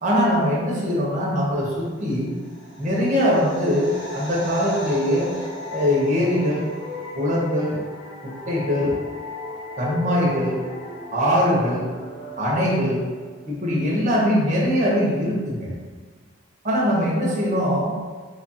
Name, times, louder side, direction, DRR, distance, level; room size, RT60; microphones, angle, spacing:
voice 1, 0.0-2.3 2.8-5.3 5.7-6.7 7.1-7.8 8.2-9.0 9.8-10.6 11.1-11.9 12.4-13.0 13.5-15.7 16.6-17.9, equal, 35° right, -5 dB, 0.7 m, -22 dB
sound 1, 2.1-7.0 7.2-7.3, equal, 55° left, 0.7 m, -38 dB
sound 2, 4.3-13.7, left 2 dB, 20° left, 1.0 m, -38 dB
3.3 x 2.4 x 4.1 m, 1.5 s
head